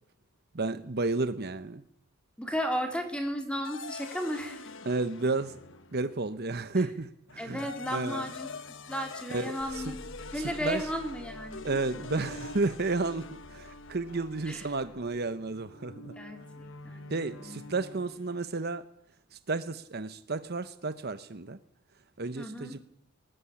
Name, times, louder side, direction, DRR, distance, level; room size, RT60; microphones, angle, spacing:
voice 1, 0.5-1.8 4.9-5.6 5.9-8.2 9.3-9.9 10.3-10.8 11.6-16.1 17.1-18.8 19.3-21.6 22.2-22.8, right 3 dB, 45° right, 11 dB, 0.9 m, -32 dB
voice 2, 2.4-4.7 7.4-8.5 8.9-11.8 14.4-14.7 16.1-17.7 22.3-22.8, equal, 5° left, 4 dB, 3.4 m, -35 dB
sound 1, 3.6-6.2 7.3-18.4, left 3 dB, 55° left, 1.2 m, -45 dB
sound 2, 9.6-15.1, equal, 70° right, 6.0 m, -51 dB
20.0 x 19.0 x 9.9 m, 0.75 s
head